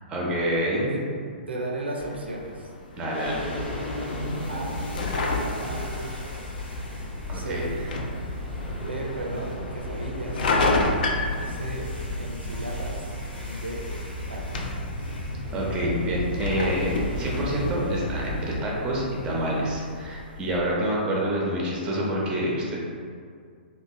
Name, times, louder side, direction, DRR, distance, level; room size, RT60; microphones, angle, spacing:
voice 1, 0.1-0.9 3.0-3.5 7.3-7.7 15.5-22.8, equal, 15° right, -3 dB, 0.5 m, -27 dB
voice 2, 1.5-2.7 4.5-4.8 5.4-6.0 7.3-7.7 8.8-10.5 11.4-13.1 13.4-13.9 14.3-14.8, right 2 dB, 80° right, 0 dB, 0.4 m, -35 dB
sound 1, 2.0-20.6, left 2 dB, 50° left, 0.4 m, -33 dB
sound 2, 3.1-20.5, left 1 dB, 85° left, 0.8 m, -34 dB
2.9 x 2.1 x 2.6 m, 2.1 s
figure-of-eight pair, 120°, 6 cm